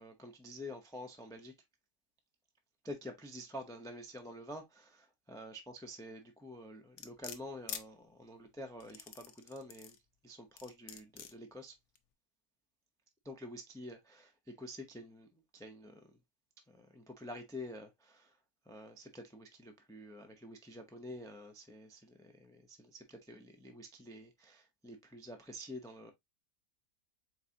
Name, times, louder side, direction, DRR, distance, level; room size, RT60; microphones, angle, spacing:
voice 1, 0.0-1.5 2.8-10.0 10.2-11.7 13.2-16.2 16.7-18.4 18.7-26.1, left 1 dB, 5° left, 0.4 m, -48 dB
sound 1, 7.0-7.8 8.8-10.0 10.6-11.3 11.9-12.0, left 8 dB, 60° left, 0.9 m, -45 dB
4.7 x 3.6 x 2.7 m
omnidirectional pair, 1.5 m